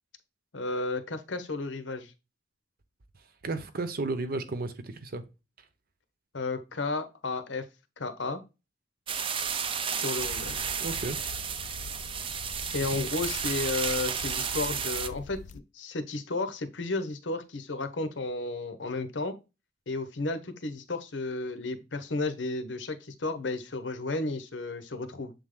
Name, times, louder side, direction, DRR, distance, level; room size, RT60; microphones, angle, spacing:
voice 1, 0.5-2.1 6.3-7.7 8.0-8.4 10.0-10.7 12.7-19.3 19.9-25.3, left 3 dB, 85° left, 0.9 m, -33 dB
voice 2, 3.4-5.2 10.8-11.2 12.8-12.9, right 3 dB, 55° right, 0.8 m, -33 dB
sound 1, 9.1-15.1, right 7 dB, 30° right, 0.5 m, -32 dB
sound 2, 10.2-15.6, left 5 dB, 40° left, 0.3 m, -44 dB
7.3 x 3.6 x 3.7 m
head